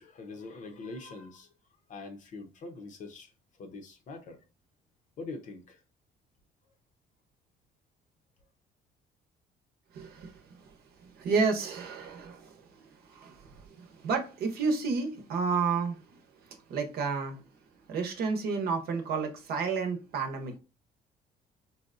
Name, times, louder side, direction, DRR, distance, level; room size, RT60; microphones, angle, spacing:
voice 1, 0.0-1.5 1.9-3.3 3.6-4.4 5.2-5.8, left 3 dB, 45° left, 0.7 m, -43 dB
voice 2, 9.9-17.4 17.9-20.6, right 5 dB, 65° right, 0.8 m, -32 dB
3.9 x 2.2 x 2.5 m
cardioid pair, 110°, 17 cm